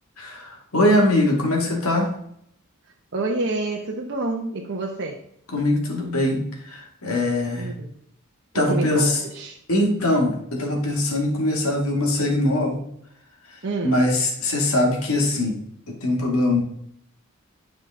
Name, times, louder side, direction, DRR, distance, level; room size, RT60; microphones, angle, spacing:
voice 1, 0.2-2.1 5.5-7.7 8.5-9.2 9.7-12.9 13.8-15.6 15.9-16.6, left 1 dB, 80° left, 0 dB, 2.3 m, -22 dB
voice 2, 3.1-5.2 7.6-8.0 8.5-9.6 13.6-14.0, right 2 dB, 55° right, 1 dB, 0.9 m, -28 dB
10.0 x 4.9 x 3.7 m, 0.70 s
head